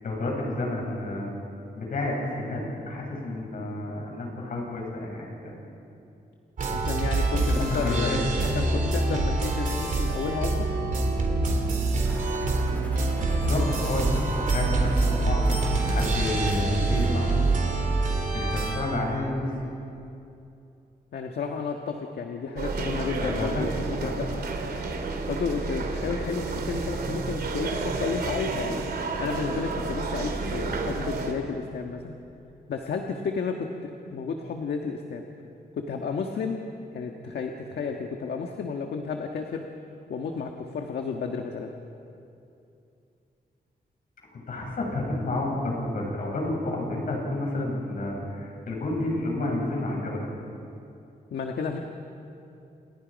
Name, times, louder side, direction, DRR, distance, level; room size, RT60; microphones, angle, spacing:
voice 1, 0.0-1.4 1.8-5.6 7.4-8.5 13.2-15.4 15.8-17.5 18.3-19.5 23.2-24.3 44.3-50.2, left 2 dB, 55° left, -2 dB, 7.9 m, -30 dB
sound 1, 6.6-18.8, right 2 dB, 50° right, 3.6 m, -25 dB
voice 2, 6.7-8.1 8.5-10.7 21.1-24.3 25.3-28.8 29.2-32.1 32.7-35.2 35.7-36.6 36.9-39.6 40.1-41.7 51.3-51.8, left 5 dB, 75° left, 3 dB, 1.6 m, -32 dB
sound 2, 12.0-17.8, equal, 10° left, 3.6 m, -45 dB
sound 3, 22.6-31.3, right 3 dB, 70° right, 2.9 m, -31 dB
30.0 x 29.5 x 5.3 m, 2.7 s
wide cardioid pair, 170°, 17 cm